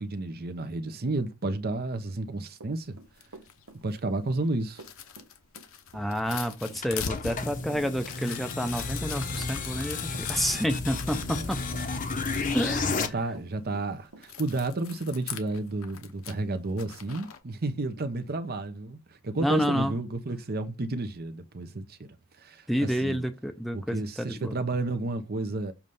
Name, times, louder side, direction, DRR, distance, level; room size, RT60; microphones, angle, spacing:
voice 1, 0.0-3.0 3.8-4.8 7.6-7.9 10.3-10.7 11.1-11.6 12.9-23.3 23.7-25.7, right 2 dB, 45° right, 0.8 m, -32 dB
Run / Walk footsteps, 2.6-14.3, right 2 dB, 80° right, 1.1 m, -49 dB
sound 1, 2.8-17.4, left 7 dB, 60° left, 1.0 m, -42 dB
voice 2, 5.9-11.6 12.5-13.0 19.4-19.9 22.7-24.5, equal, ahead, 0.6 m, -29 dB
sound 2, 6.8-13.1, left 4 dB, 35° left, 0.9 m, -32 dB
7.1 x 3.2 x 5.3 m
head